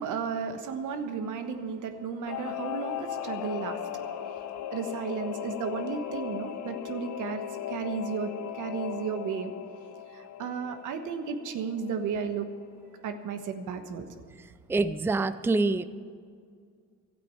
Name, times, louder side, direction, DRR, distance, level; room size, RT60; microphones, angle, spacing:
voice 1, 0.0-4.1 4.7-9.5 10.1-12.5 13.0-14.2, right 6 dB, 85° right, 7 dB, 1.3 m, -34 dB
Singing / Musical instrument, 2.3-12.3 12.6-12.7, left 10 dB, 65° left, 0.9 m, -37 dB
voice 2, 14.7-15.8, right 3 dB, 10° right, 13 dB, 0.4 m, -25 dB
13.0 x 8.5 x 8.7 m, 2.1 s
cardioid pair, 90°, 30 cm